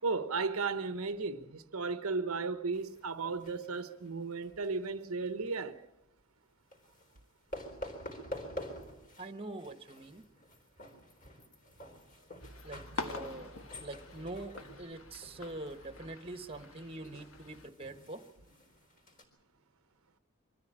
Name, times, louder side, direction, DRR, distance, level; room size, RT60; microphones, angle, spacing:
voice 1, 0.0-5.8, right 4 dB, 75° right, 0.9 m, -35 dB
sound 1, 2.7-4.9 5.3-5.6 6.7-7.2 7.5-9.3 9.6-19.2, equal, 40° left, 4.0 m, -48 dB
voice 2, 9.2-10.2 12.6-18.2, right 2 dB, 25° right, 1.2 m, -44 dB
sound 2, 12.4-17.7, left 2 dB, 65° left, 1.6 m, -46 dB
24.0 x 14.0 x 8.7 m
head